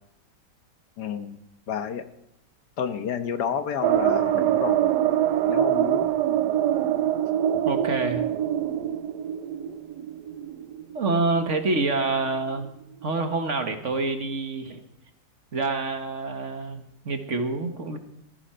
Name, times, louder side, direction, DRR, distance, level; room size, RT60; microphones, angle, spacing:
voice 1, 1.0-1.4 1.7-2.0 2.8-4.9 5.5-6.1, left 7 dB, 75° left, 9 dB, 1.7 m, -30 dB
sound 1, 3.8-12.3 12.7-12.8 13.0-13.1, right 11 dB, 85° right, 1.3 m, -24 dB
voice 2, 7.6-8.3 10.9-12.7 13.0-14.8 15.5-18.0, right 3 dB, 50° right, 6 dB, 1.7 m, -27 dB
19.0 x 14.5 x 4.5 m, 0.81 s
omnidirectional pair, 1.8 m